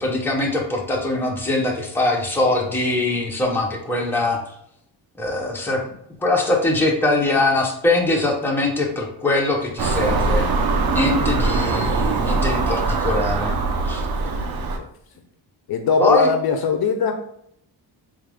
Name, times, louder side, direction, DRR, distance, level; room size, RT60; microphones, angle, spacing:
voice 1, 0.0-4.4 5.2-5.8 6.2-10.4 10.9-13.6 13.8-14.0 16.0-16.3, left 2 dB, 5° left, -1 dB, 0.6 m, -22 dB
Car passing by / Engine, 9.8-14.8, right 3 dB, 55° right, 0.6 m, -22 dB
voice 2, 15.7-17.2, left 5 dB, 55° left, 6 dB, 0.5 m, -21 dB
4.0 x 2.4 x 3.4 m, 0.71 s
cardioid pair, 120°, 44 cm